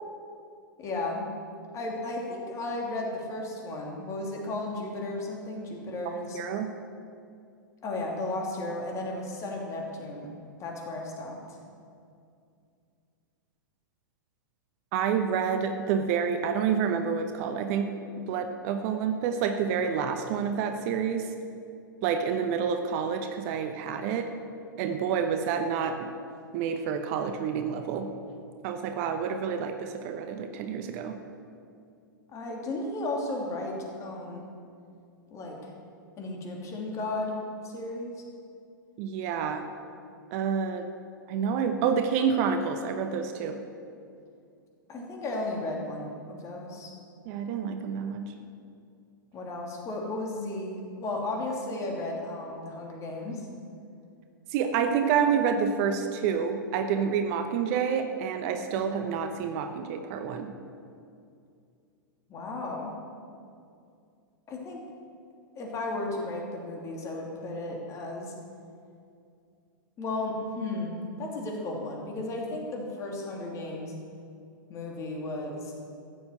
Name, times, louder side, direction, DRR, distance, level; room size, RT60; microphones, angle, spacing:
voice 1, 0.8-1.3 1.7-6.4 7.8-10.3 10.6-11.6 32.3-34.4 35.3-35.7 36.2-37.4 37.6-38.2 44.9-46.9 49.3-53.5 62.3-62.9 64.5-64.8 65.6-68.3 70.0-73.9 74.7-75.7, left 2 dB, 30° left, 0 dB, 2.9 m, -34 dB
voice 2, 6.3-6.7 14.9-21.3 22.0-24.3 24.8-26.1 26.5-28.1 28.6-31.2 39.0-39.7 40.3-40.9 41.3-43.6 47.3-48.3 54.5-60.5, right 7 dB, 45° right, 7 dB, 1.0 m, -28 dB
14.5 x 7.1 x 8.1 m, 2.4 s
figure-of-eight pair, 100°, 11 cm